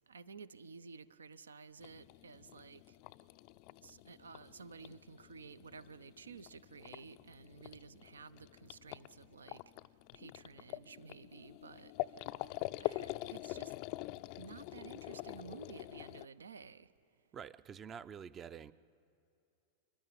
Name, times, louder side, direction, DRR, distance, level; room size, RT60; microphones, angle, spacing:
voice 1, 0.1-2.8 3.8-9.6 10.1-11.9 12.8-13.7 14.4-16.9, right 5 dB, 70° right, 17 dB, 0.5 m, -53 dB
sound 1, 1.8-16.2, left 18 dB, 45° left, 0.4 m, -45 dB
voice 2, 17.3-18.7, right 7 dB, 25° right, 15 dB, 0.5 m, -48 dB
29.0 x 11.0 x 8.7 m, 2.7 s
figure-of-eight pair, 90°, 0 cm